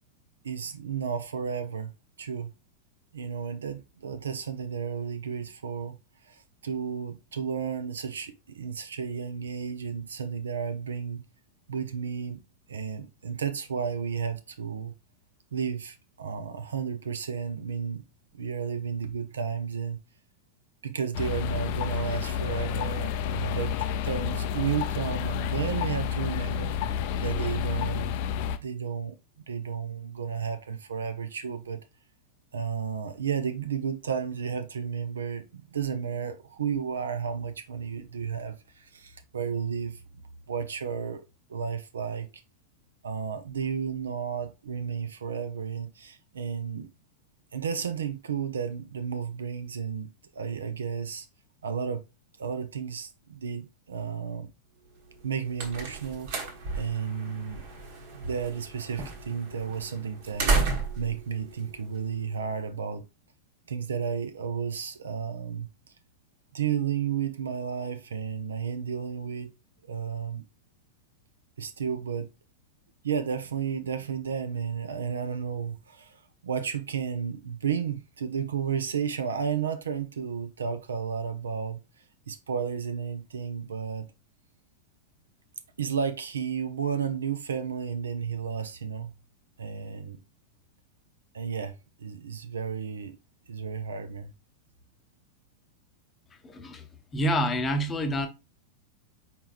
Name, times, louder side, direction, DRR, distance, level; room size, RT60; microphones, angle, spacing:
voice 1, 0.4-1.9 2.2-2.5 3.1-6.0 6.2-11.2 11.7-12.4 12.7-14.9 15.5-18.0 18.3-20.0 20.8-28.1 28.6-31.8 32.5-40.2 40.5-41.2 41.5-42.4 43.0-46.9 47.5-51.3 51.6-52.0 52.4-54.5 55.2-56.3 56.8-57.6 58.1-60.5 61.0-63.1 63.7-65.7 66.5-69.5 69.9-70.4 71.6-72.3 73.0-81.8 82.3-84.1 85.8-89.1 89.6-90.2 91.3-93.2 93.5-94.3, right 7 dB, 70° right, 0.6 m, -32 dB
sound 1, 21.1-28.6, left 8 dB, 45° left, 0.4 m, -30 dB
sound 2, 55.1-62.5, right 4 dB, 50° right, 1.2 m, -33 dB
voice 2, 96.4-96.9 97.1-98.3, equal, 20° left, 0.7 m, -27 dB
4.6 x 4.3 x 2.4 m
figure-of-eight pair, 90°, 0 cm